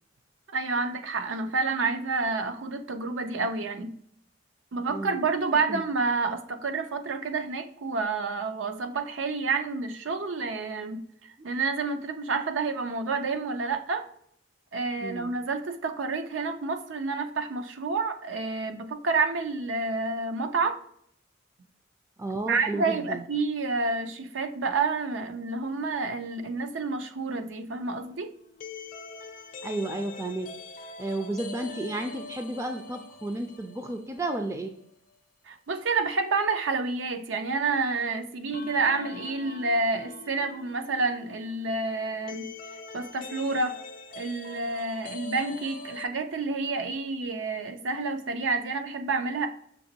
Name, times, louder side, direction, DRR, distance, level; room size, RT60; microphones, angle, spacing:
voice 1, 0.5-4.0 4.7-14.0 14.7-20.8 22.4-28.3 35.5-42.5 42.9-43.7 44.2-49.5, right 4 dB, 80° right, 7 dB, 0.6 m, -29 dB
voice 2, 4.9-5.2 5.7-5.8 15.0-15.4 22.2-23.3 29.6-30.5 31.0-34.7, right 2 dB, 15° right, 5 dB, 0.4 m, -32 dB
sound 1, 27.8-34.5 34.8-34.9 38.5-46.1, left 4 dB, 45° left, 0.5 m, -44 dB
6.2 x 2.9 x 2.8 m, 0.68 s
head